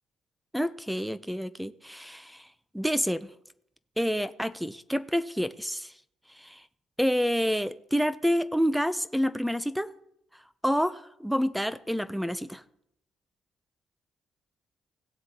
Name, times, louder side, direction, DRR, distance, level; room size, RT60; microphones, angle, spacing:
voice 1, 0.5-2.5 2.7-3.3 4.0-5.9 6.4-6.6 7.0-9.9 10.6-12.6, equal, ahead, 0.6 m, -28 dB
17.0 x 7.6 x 2.9 m
hypercardioid pair, 55°, 0 cm